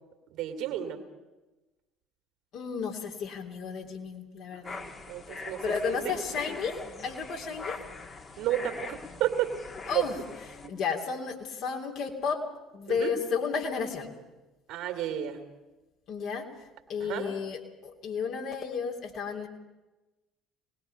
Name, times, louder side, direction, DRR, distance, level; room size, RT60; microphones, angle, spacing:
voice 1, 0.3-1.0 4.5-6.1 8.4-9.5 9.9-10.0 12.9-13.1 14.7-15.4 17.0-17.3, right 12 dB, 55° right, 5 dB, 2.5 m, -32 dB
voice 2, 2.5-4.8 5.6-6.8 7.0-7.8 9.9-10.2 10.7-12.4 12.7-14.1 16.1-16.5 16.9-19.5, left 6 dB, 55° left, 1 dB, 3.0 m, -32 dB
sound 1, 4.6-10.7, left 4 dB, 30° left, 2.0 m, -42 dB
24.0 x 20.0 x 5.7 m, 1.1 s
figure-of-eight pair, 55°, 0 cm